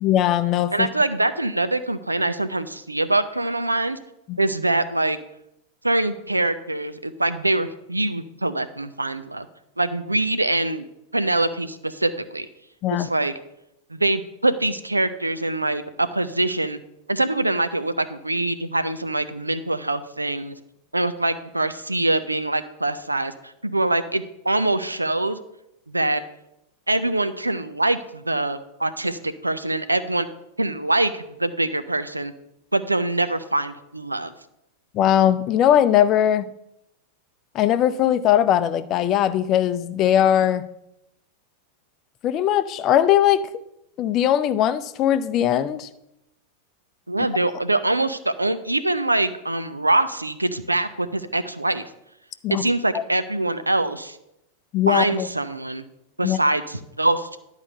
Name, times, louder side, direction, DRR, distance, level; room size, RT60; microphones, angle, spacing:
voice 1, 0.0-0.9 4.3-4.4 12.8-13.1 34.9-36.5 37.5-40.6 42.2-43.5 44.0-45.9 52.4-52.7 52.9-53.0 54.7-55.3 56.2-56.4, left 11 dB, 35° left, 0.5 m, -20 dB
voice 2, 0.7-4.0 4.4-5.2 5.8-9.5 9.8-10.9 11.1-12.5 13.0-13.3 13.9-16.8 17.1-20.6 20.9-25.4 25.9-26.2 26.9-30.3 30.6-32.3 32.7-34.3 47.1-51.9 52.5-54.2 54.9-55.8 56.2-57.4, right 2 dB, 85° right, 0.6 m, -24 dB
11.0 x 4.9 x 6.7 m
figure-of-eight pair, 90°, 0 cm